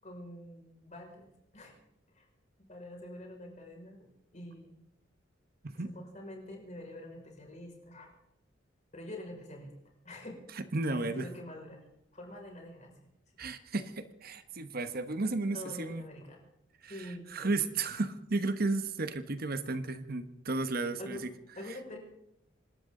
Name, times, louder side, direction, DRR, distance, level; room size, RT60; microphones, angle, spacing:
voice 1, 0.0-1.3 1.5-1.7 2.1-2.3 2.6-4.0 4.3-4.7 5.7-8.1 8.9-9.7 10.0-10.4 10.9-11.8 12.1-13.1 13.4-13.5 15.1-16.4 16.8-17.5 21.0-21.3 21.6-22.0, left 1 dB, 40° left, 1 dB, 5.5 m, -46 dB
voice 2, 10.6-11.3 13.4-16.0 16.8-21.2, right 3 dB, 50° right, 10 dB, 1.2 m, -33 dB
26.5 x 13.0 x 3.9 m, 0.84 s
head